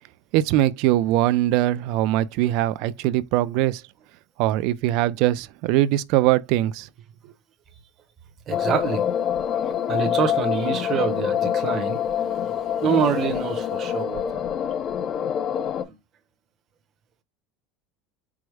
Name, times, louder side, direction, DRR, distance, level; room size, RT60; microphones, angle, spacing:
voice 1, 0.3-3.8 4.4-6.9, right 14 dB, 55° right, 0.3 m, -21 dB
sound 1, 8.5-15.8, left 9 dB, 30° left, 0.4 m, -26 dB
voice 2, 8.5-9.0 9.9-12.0 12.2-12.5 12.8-14.2 15.8-15.9, right 6 dB, 30° right, 0.7 m, -25 dB
4.7 x 2.0 x 4.6 m
cardioid pair, 165°, 0 cm